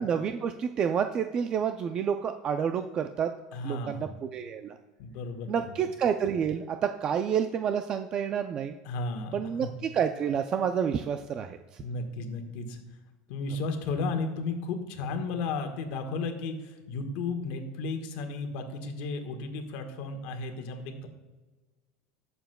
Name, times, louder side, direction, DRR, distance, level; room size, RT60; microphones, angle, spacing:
voice 1, 0.0-3.3 3.6-4.8 5.5-8.7 9.3-11.6, right 7 dB, 25° right, 7 dB, 0.3 m, -29 dB
voice 2, 3.5-4.0 5.0-5.8 8.8-9.7 11.8-12.8 13.3-21.1, left 3 dB, 55° left, 5 dB, 1.4 m, -34 dB
20.0 x 7.0 x 2.2 m, 1.3 s
cardioid pair, 165°, 3 cm